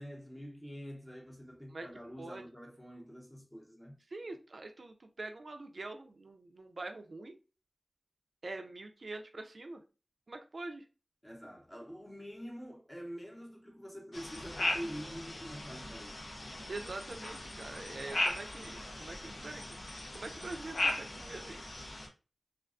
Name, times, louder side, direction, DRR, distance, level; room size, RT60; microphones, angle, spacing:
voice 1, 0.0-4.0 11.2-16.2, equal, 15° left, 0.7 m, -46 dB
voice 2, 4.1-7.4 8.4-9.8 10.3-10.8 16.7-19.8 20.1-21.6, right 2 dB, 65° right, 0.3 m, -44 dB
sound 1, 14.1-22.1, left 1 dB, 80° left, 0.5 m, -38 dB
2.3 x 2.2 x 2.4 m
wide cardioid pair, 80°, 0 cm